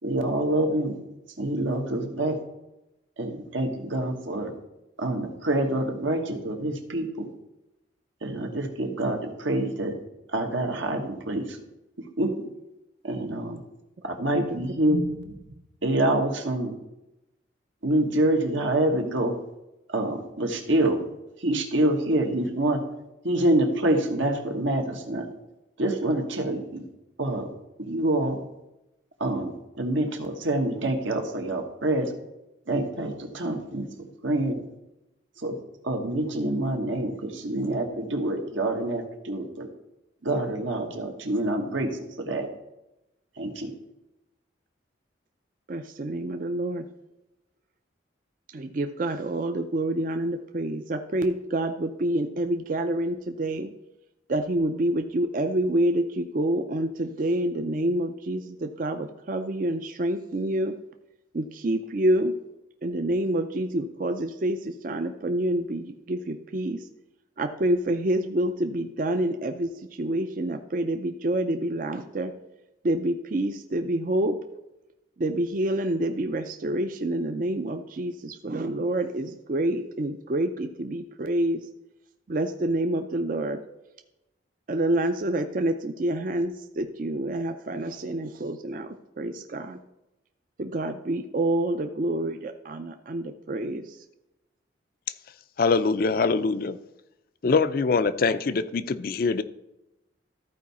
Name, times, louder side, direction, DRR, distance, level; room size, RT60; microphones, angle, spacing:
voice 1, 0.0-0.9 1.4-2.4 3.2-4.5 5.0-7.3 8.2-10.0 10.3-11.6 12.2-12.4 13.0-13.6 14.0-15.5 15.8-16.7 17.8-19.3 19.9-21.0 21.4-22.8 23.2-25.3 25.8-26.8 27.2-27.5 27.8-28.4 29.2-32.1 32.7-34.6 35.4-35.5 35.8-39.7 40.2-42.5 43.4-43.7, right 1 dB, 80° right, 3 dB, 1.4 m, -26 dB
voice 2, 45.7-46.8 48.5-53.7 54.3-60.7 61.3-62.3 62.8-66.8 67.4-69.7 70.0-72.3 72.8-74.4 75.2-81.6 82.3-83.6 84.7-88.9 89.2-89.8 90.6-93.8, right 1 dB, 45° right, 7 dB, 0.4 m, -27 dB
voice 3, 95.6-96.8 97.4-99.4, left 4 dB, 50° left, 13 dB, 0.4 m, -23 dB
14.0 x 4.7 x 4.2 m, 0.93 s
head